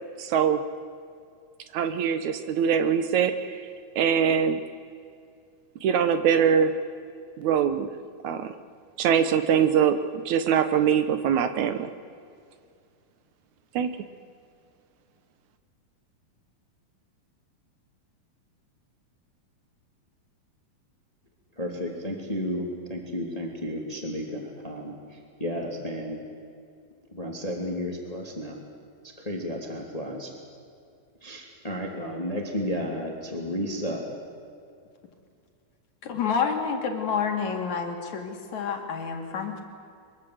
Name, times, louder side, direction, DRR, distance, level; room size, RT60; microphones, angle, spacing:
voice 1, 0.2-0.6 1.7-3.7 4.0-4.6 5.8-6.8 7.4-7.9 8.2-8.5 9.0-11.9 13.8-13.9, right 8 dB, 70° right, 10 dB, 1.9 m, -23 dB
voice 2, 21.6-26.2 27.1-28.6 29.2-30.3 31.2-34.1, equal, 10° left, 1 dB, 2.2 m, -32 dB
voice 3, 36.0-39.6, left 6 dB, 55° left, 3 dB, 3.3 m, -29 dB
23.5 x 23.5 x 7.9 m, 2.3 s
omnidirectional pair, 4.3 m